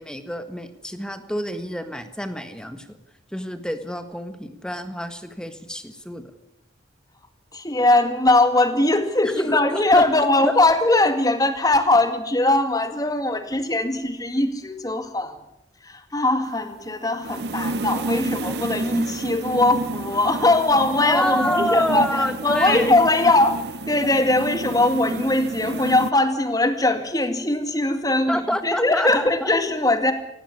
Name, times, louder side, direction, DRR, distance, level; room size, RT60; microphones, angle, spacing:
voice 1, 0.0-2.9 3.3-6.3 9.2-10.5 21.0-22.9 28.3-29.5, equal, 5° left, 9 dB, 1.6 m, -27 dB
voice 2, 7.5-15.4 15.8-23.6 23.9-30.1, left 2 dB, 20° left, 8 dB, 2.1 m, -20 dB
sound 1, 16.5-26.1, right 2 dB, 60° right, 0.8 m, -30 dB
17.5 x 17.0 x 9.7 m, 0.84 s
head